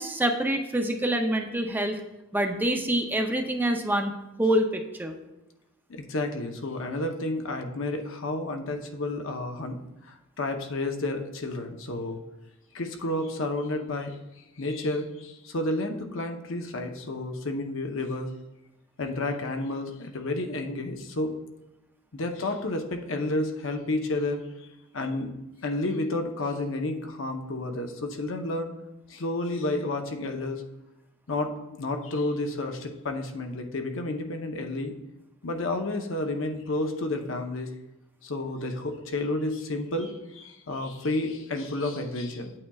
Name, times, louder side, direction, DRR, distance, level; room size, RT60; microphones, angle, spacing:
voice 1, 0.0-2.0 2.3-5.1, right 1 dB, 10° right, 4 dB, 0.5 m, -26 dB
voice 2, 5.9-12.2 12.7-14.2 14.6-18.3 19.0-21.3 22.1-24.7 24.9-25.3 25.6-28.7 29.1-30.6 31.3-34.9 35.4-37.7 38.2-42.5, left 2 dB, 65° left, 4 dB, 0.8 m, -31 dB
8.6 x 8.3 x 2.3 m, 0.96 s
head